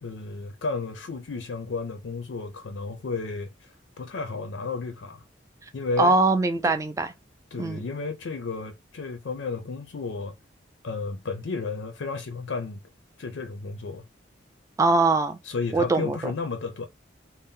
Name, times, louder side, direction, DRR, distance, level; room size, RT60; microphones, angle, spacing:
voice 1, 0.0-5.2 5.7-6.1 6.6-6.8 7.5-10.4 10.8-12.8 13.2-14.0 15.4-16.9, left 4 dB, 70° left, 0.4 m, -33 dB
voice 2, 6.0-7.1 7.6-7.8 14.8-15.4 15.7-16.3, right 3 dB, 15° right, 0.3 m, -22 dB
2.7 x 2.0 x 3.5 m
head